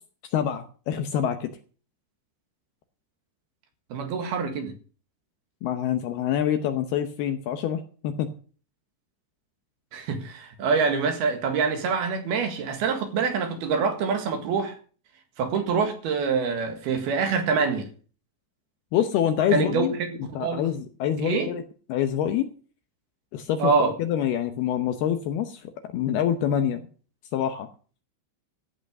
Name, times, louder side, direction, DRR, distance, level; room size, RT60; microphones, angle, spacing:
voice 1, 0.3-1.5 5.6-8.3 18.9-19.9 20.3-21.6 21.9-22.5 23.3-23.7 24.0-26.8 27.3-27.7, left 10 dB, 75° left, 2.4 m, -26 dB
voice 2, 3.9-4.7 9.9-14.8 15.4-17.9 19.5-20.7 21.2-21.5 23.6-23.9, right 5 dB, 60° right, 3.4 m, -25 dB
15.0 x 7.9 x 6.6 m
omnidirectional pair, 5.4 m